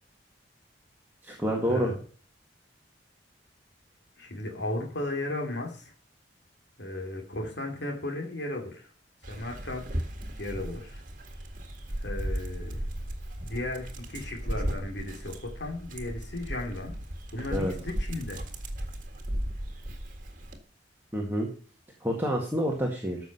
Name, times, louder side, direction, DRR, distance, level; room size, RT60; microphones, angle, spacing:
voice 1, 1.2-1.9 17.5-17.7 21.1-21.5 22.0-23.2, equal, 10° right, -1 dB, 1.9 m, -28 dB
voice 2, 4.2-5.9 6.8-8.9 9.3-9.8 10.4-11.0 12.0-12.8 13.5-16.9 17.3-18.4, left 1 dB, 65° left, 1 dB, 2.7 m, -35 dB
Dog, 9.2-20.6, right 1 dB, 45° right, 1.9 m, -36 dB
13.5 x 6.3 x 5.5 m, 0.40 s
head